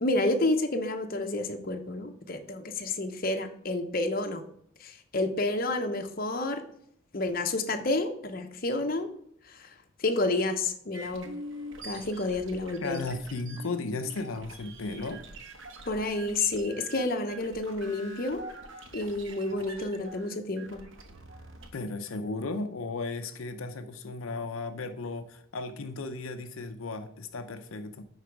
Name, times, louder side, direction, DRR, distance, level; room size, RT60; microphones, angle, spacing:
voice 1, 0.0-4.4 4.8-6.6 7.1-9.1 9.4-11.3 11.8-13.0 15.9-18.4 18.9-20.8, left 2 dB, 45° left, 5 dB, 0.9 m, -30 dB
sound 1, 10.9-21.7, right 1 dB, 70° right, 1.1 m, -45 dB
voice 2, 12.8-15.2 21.7-28.0, left 3 dB, 85° left, 7 dB, 0.6 m, -35 dB
10.0 x 4.1 x 4.7 m, 0.69 s
head